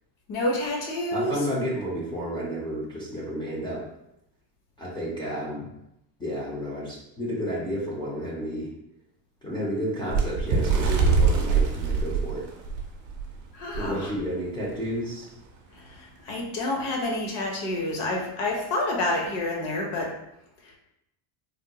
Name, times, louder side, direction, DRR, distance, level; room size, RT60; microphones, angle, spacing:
voice 1, 0.3-1.4 13.5-14.1 15.7-20.1 20.6-20.7, left 1 dB, 60° left, 0 dB, 1.0 m, -28 dB
voice 2, 1.1-3.8 4.8-5.7 6.2-8.7 9.4-12.5 13.8-15.3, equal, 10° left, -6 dB, 0.4 m, -31 dB
Bird, 10.1-13.3 13.7-13.9 14.2-14.4 15.2-15.3, right 5 dB, 40° right, 0.6 m, -23 dB
3.5 x 2.2 x 2.8 m, 0.81 s
cardioid pair, 160°, 49 cm